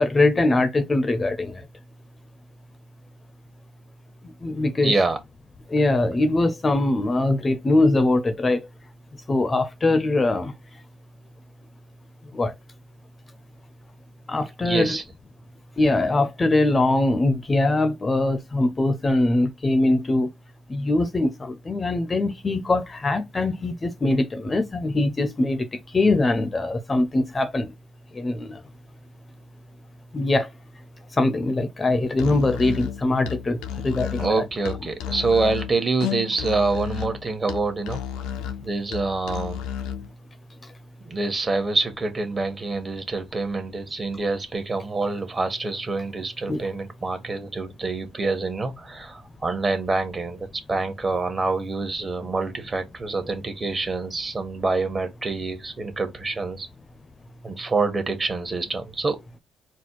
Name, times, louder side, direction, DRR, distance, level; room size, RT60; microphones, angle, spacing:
voice 1, 0.0-1.6 4.4-4.9 5.7-8.7 9.3-10.5 12.3-12.5 14.3-15.0 15.8-20.3 20.7-25.7 25.9-27.7 28.1-28.6 30.1-30.5 31.2-34.4 46.5-46.7, left 2 dB, 25° left, 0.6 m, -22 dB
voice 2, 4.8-5.2 14.6-15.0 34.2-38.0 38.6-39.7 41.0-56.7 57.4-59.2, right 3 dB, 30° right, 1.2 m, -26 dB
Musical instrument, 32.1-40.1, left 10 dB, 90° left, 0.5 m, -32 dB
4.2 x 2.2 x 4.5 m
cardioid pair, 85°, 0 cm